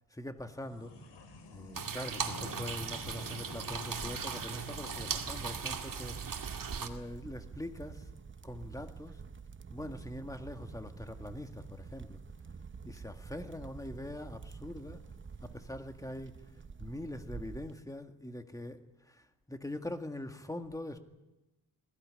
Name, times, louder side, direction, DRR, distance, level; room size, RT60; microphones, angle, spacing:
voice 1, 0.1-1.0 1.5-6.3 6.8-8.1 8.4-9.2 9.7-12.2 12.8-15.0 15.4-16.4 16.8-21.0, left 1 dB, 10° left, 7 dB, 1.9 m, -43 dB
sound 1, 0.6-7.3, left 3 dB, 85° left, 4.1 m, -50 dB
sound 2, 1.7-6.9, right 6 dB, 50° right, 2.1 m, -38 dB
sound 3, 5.1-17.7, right 5 dB, 30° right, 0.8 m, -48 dB
21.0 x 16.5 x 9.8 m, 1.0 s
cardioid pair, 110°, 41 cm